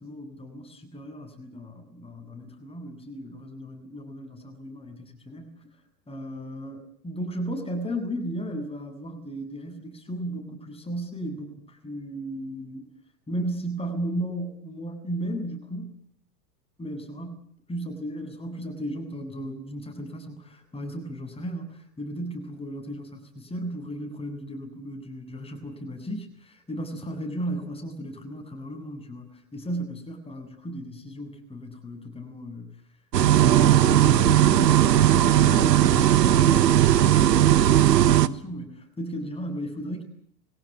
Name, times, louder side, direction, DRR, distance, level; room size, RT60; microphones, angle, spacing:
voice 1, 0.0-5.5 6.1-12.9 13.3-16.0 16.8-32.7 33.2-40.0, right 1 dB, 10° left, 5 dB, 7.9 m, -35 dB
sound 1, 33.1-38.3, right 11 dB, 80° right, 1.3 m, -18 dB
23.5 x 18.0 x 9.5 m, 0.62 s
hypercardioid pair, 105°, 49 cm